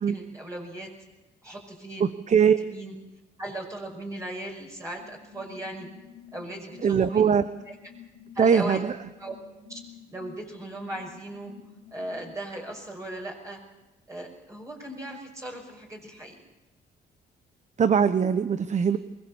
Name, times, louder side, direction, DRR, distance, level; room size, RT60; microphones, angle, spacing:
voice 1, 0.1-0.9 1.4-2.1 2.6-2.9 3.4-5.9 6.3-7.3 7.7-7.9 8.3-8.8 9.2-9.3 9.7-9.8 10.1-11.5 11.9-13.6 14.1-16.4, right 1 dB, 20° right, -1 dB, 5.9 m, -37 dB
voice 2, 2.0-2.6 6.8-7.4 8.4-8.9 17.8-19.0, right 7 dB, 40° right, 12 dB, 1.0 m, -21 dB
sound 1, 5.0-12.3, left 9 dB, 80° left, 3.3 m, -51 dB
24.0 x 21.0 x 7.2 m, 1.0 s
cardioid pair, 90°, 18 cm